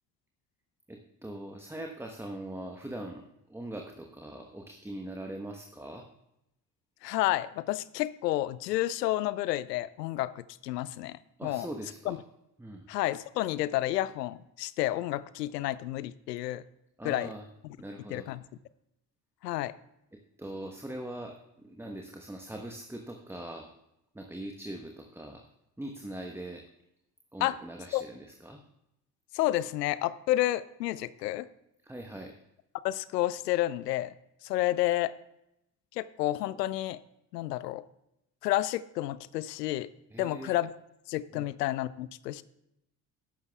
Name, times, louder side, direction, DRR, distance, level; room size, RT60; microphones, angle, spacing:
voice 1, 0.9-6.1 11.4-12.2 12.6-12.9 17.0-17.4 17.8-18.3 20.1-23.8 24.1-25.4 25.8-26.6 27.3-28.6 31.8-32.4 40.1-40.5 41.3-41.5, right 1 dB, 5° right, 3 dB, 1.0 m, -41 dB
voice 2, 7.0-11.7 12.1-12.2 12.9-16.6 17.0-17.3 18.1-18.4 19.4-19.7 27.4-27.6 27.9-28.0 29.3-31.5 32.8-34.1 34.4-35.1 36.0-37.0 37.3-37.8 38.4-39.9 40.2-40.7 41.1-42.4, left 15 dB, 80° left, 18 dB, 0.5 m, -30 dB
14.5 x 11.5 x 2.3 m, 0.84 s
figure-of-eight pair, 50°, 49 cm